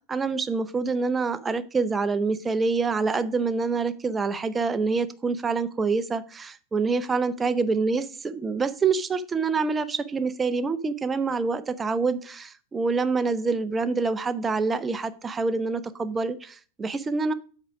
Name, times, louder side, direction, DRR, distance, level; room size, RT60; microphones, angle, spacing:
voice 1, 0.1-17.3, right 4 dB, 15° right, 0.6 m, -26 dB
8.1 x 3.7 x 5.9 m
figure-of-eight pair, 90°, 0 cm